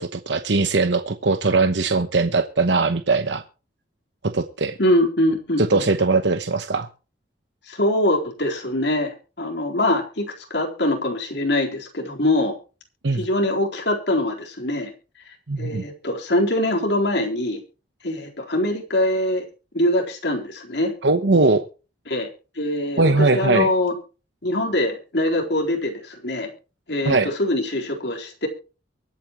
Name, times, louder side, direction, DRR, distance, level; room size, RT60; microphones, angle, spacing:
voice 1, 0.0-3.4 4.2-4.8 5.6-6.9 13.0-13.3 15.5-15.8 21.0-21.6 23.0-23.7 27.0-27.3, right 3 dB, 65° right, 8 dB, 1.0 m, -20 dB
voice 2, 4.8-5.8 7.7-12.5 13.1-14.9 15.6-17.6 18.0-19.4 19.7-20.9 22.1-22.3 22.5-23.9 24.4-26.5 26.9-28.5, left 1 dB, 60° left, 1 dB, 4.1 m, -23 dB
23.5 x 8.7 x 3.1 m, 0.34 s
head